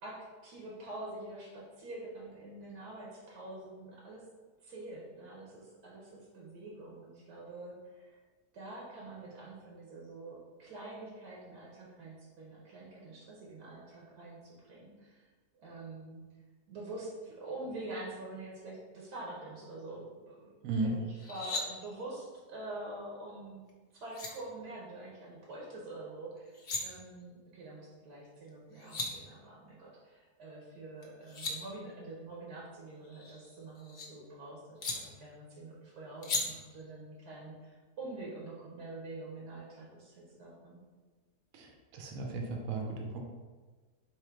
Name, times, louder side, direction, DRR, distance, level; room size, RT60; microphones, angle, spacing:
voice 1, 0.0-4.3 4.6-8.2 8.5-15.2 15.5-16.2 16.7-20.5 20.8-23.7 23.9-40.8, right 2 dB, 85° right, -4 dB, 1.5 m, -46 dB
sound 1, 21.1-21.6 23.7-23.8 24.1-24.3 26.4-26.8 28.5-28.6 28.7-29.1 31.0-31.5 33.0-34.1 34.8-34.9 36.2-36.4, left 3 dB, 55° left, 0.7 m, -36 dB
voice 2, 41.5-43.2, right 3 dB, 65° right, 1 dB, 1.0 m, -35 dB
3.7 x 3.0 x 4.4 m, 1.4 s
omnidirectional pair, 1.7 m